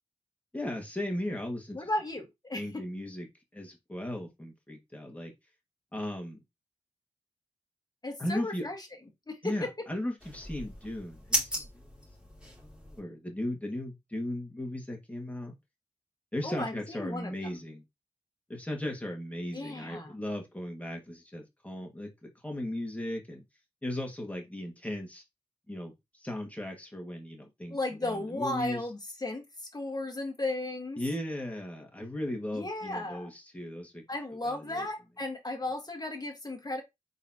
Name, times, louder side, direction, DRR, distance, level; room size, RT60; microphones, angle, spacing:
voice 1, 0.5-1.8 2.5-3.3 3.5-5.3 5.9-6.4 8.2-8.7 9.4-15.5 16.3-17.8 18.5-23.4 23.8-25.2 25.7-28.8 31.0-34.0 34.4-34.9, left 1 dB, 10° left, 1.8 m, -37 dB
voice 2, 1.7-2.8 8.0-8.9 9.3-9.7 16.4-17.6 19.5-20.1 27.7-31.0 32.5-33.3 34.1-36.8, left 2 dB, 30° left, 1.5 m, -35 dB
sound 1, 10.2-13.0, equal, 5° right, 2.5 m, -36 dB
4.0 x 3.9 x 2.8 m
cardioid pair, 50°, 14 cm